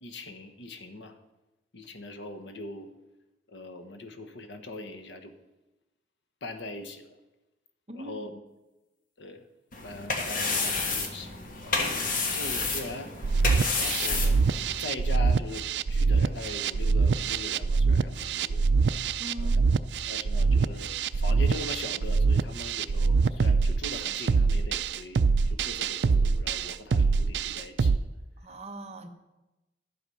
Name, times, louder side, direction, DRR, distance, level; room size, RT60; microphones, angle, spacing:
voice 1, 0.0-1.2 1.7-2.9 3.5-5.3 6.4-7.2 7.9-8.3 9.2-9.4 9.8-11.3 11.6-13.1 13.8-14.4 14.8-18.7 19.4-19.5 20.0-28.0, left 2 dB, 85° left, 8 dB, 1.2 m, -41 dB
voice 2, 7.9-8.3 19.2-19.6 28.4-29.1, right 1 dB, 35° right, 6 dB, 1.0 m, -41 dB
sound 1, 9.7-14.8, left 4 dB, 50° left, 1.5 m, -30 dB
sound 2, 13.2-28.0, right 4 dB, 70° right, 0.4 m, -24 dB
12.0 x 7.9 x 5.6 m, 1.0 s
head